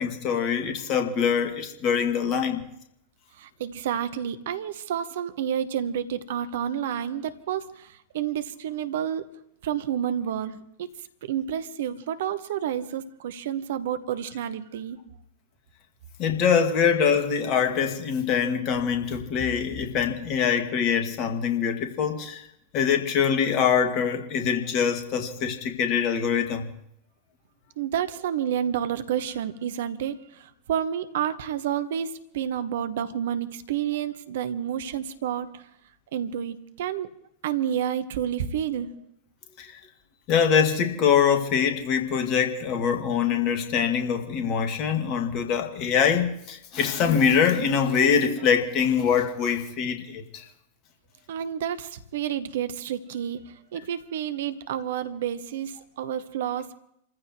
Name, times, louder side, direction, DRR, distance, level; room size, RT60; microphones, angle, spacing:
voice 1, 0.0-2.6 16.2-22.4 22.7-26.7 39.6-39.7 40.3-50.4, left 7 dB, 40° left, 2.1 m, -24 dB
voice 2, 3.4-9.3 9.6-10.9 11.2-15.0 27.8-35.6 36.1-37.1 37.4-38.9 51.3-56.7, right 9 dB, 55° right, 1.0 m, -30 dB
29.5 x 14.5 x 3.2 m
figure-of-eight pair, 90°, 0 cm